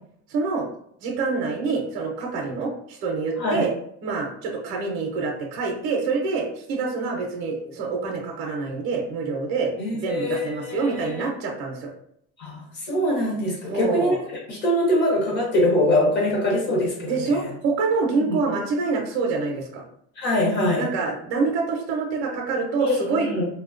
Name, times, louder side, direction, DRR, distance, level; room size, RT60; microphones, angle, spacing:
voice 1, 0.3-0.7 1.0-3.7 4.0-11.9 13.7-14.2 17.0-19.8 20.8-23.3, right 4 dB, 50° right, 0 dB, 0.5 m, -26 dB
voice 2, 9.8-11.2 12.4-14.2 14.5-17.5 18.2-18.4 20.2-20.9 22.8-23.5, left 1 dB, 35° left, -1 dB, 0.8 m, -23 dB
3.0 x 2.1 x 2.4 m, 0.71 s
cardioid pair, 165°, 31 cm